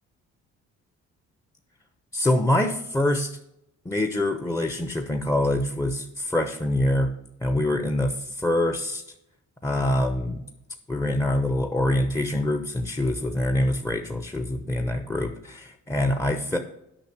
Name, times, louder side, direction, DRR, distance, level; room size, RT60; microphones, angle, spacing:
voice 1, 2.1-3.4 3.8-7.1 7.4-9.0 9.6-10.4 10.9-16.6, left 1 dB, 10° left, 6 dB, 0.8 m, -25 dB
8.9 x 5.7 x 7.3 m, 0.81 s
cardioid pair, 90°, 30 cm